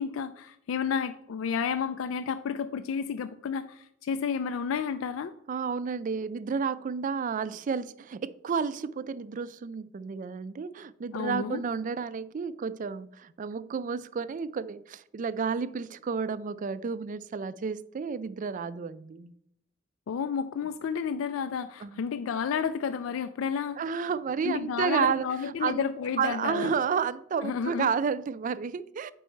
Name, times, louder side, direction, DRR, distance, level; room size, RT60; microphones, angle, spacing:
voice 1, 0.0-5.3 11.1-11.6 20.1-23.8 24.4-26.7 27.4-27.9, left 6 dB, 85° left, 0.4 m, -31 dB
voice 2, 5.5-19.3 21.8-22.0 23.8-25.8 26.2-29.1, right 6 dB, 40° right, 0.3 m, -31 dB
8.2 x 5.4 x 4.5 m
head